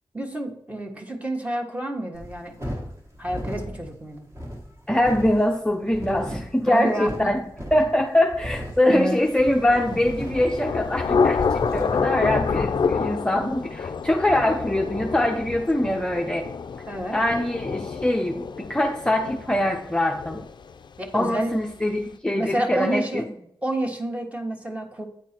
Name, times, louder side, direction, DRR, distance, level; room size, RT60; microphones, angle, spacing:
voice 1, 0.1-2.6 3.2-4.3 6.6-7.3 8.9-9.2 9.9-10.0 16.9-17.2 21.0-21.5 22.3-23.2 23.6-25.0, right 1 dB, 15° right, 2 dB, 1.4 m, -29 dB
sound 1, 2.1-12.0, equal, 35° right, 1.7 m, -37 dB
voice 2, 4.9-7.4 7.7-16.5 17.1-20.4 21.1-23.3, left 1 dB, 10° left, 1 dB, 0.7 m, -23 dB
Thunder / Rain, 9.5-21.1, left 5 dB, 60° left, 0.4 m, -28 dB
8.9 x 4.5 x 4.4 m, 0.71 s
wide cardioid pair, 90°, 9 cm